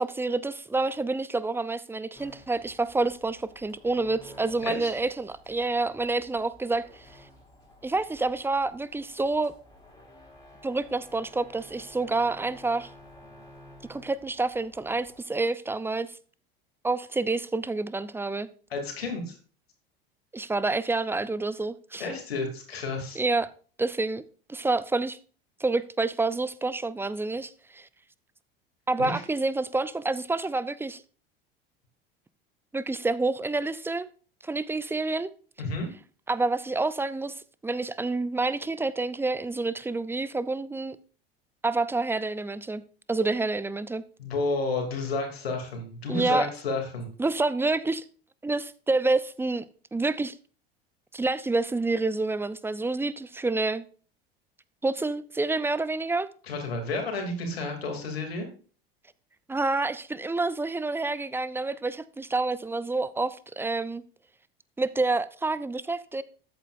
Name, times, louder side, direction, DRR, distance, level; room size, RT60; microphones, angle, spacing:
voice 1, 0.0-7.1 7.8-9.5 10.6-12.9 13.9-16.1 16.8-18.5 20.3-22.1 23.2-23.5 23.8-24.2 24.5-25.2 25.6-27.9 28.9-31.0 32.7-34.1 34.4-35.3 36.3-37.3 37.6-41.0 41.6-42.8 43.1-44.0 46.1-46.5 47.2-48.0 48.4-49.6 49.9-50.3 51.1-53.8 54.8-56.3 59.5-64.0 64.8-66.2, right 3 dB, 10° right, 0.5 m, -28 dB
sound 1, 2.1-15.2, left 1 dB, 10° left, 3.8 m, -53 dB
voice 2, 18.7-19.4 22.0-23.2 29.0-29.1 35.6-35.9 44.2-47.1 56.5-58.5, left 3 dB, 85° left, 2.9 m, -31 dB
13.5 x 8.3 x 2.6 m
hypercardioid pair, 80°, 30 cm